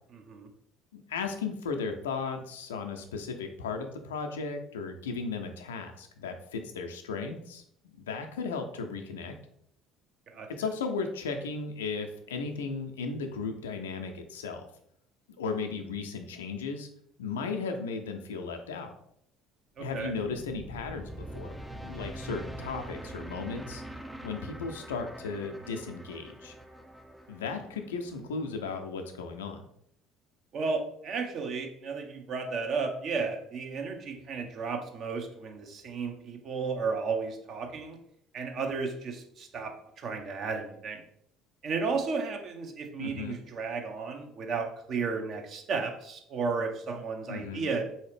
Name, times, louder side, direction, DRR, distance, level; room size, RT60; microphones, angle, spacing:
voice 1, 0.1-0.5 10.3-10.5 19.8-20.1 30.5-38.0 38.3-41.0 41.6-47.9, right 4 dB, 50° right, 4 dB, 0.7 m, -33 dB
voice 2, 0.9-9.4 10.5-14.7 15.4-16.9 17.2-18.9 19.8-21.6 21.8-23.8 24.2-26.5 27.3-29.6 43.0-43.4 47.3-47.6, left 4 dB, 80° left, 5 dB, 0.4 m, -35 dB
sound 1, 19.8-28.9, right 1 dB, 10° right, 0.4 m, -44 dB
3.8 x 2.8 x 3.3 m, 0.70 s
hypercardioid pair, 60°, 0 cm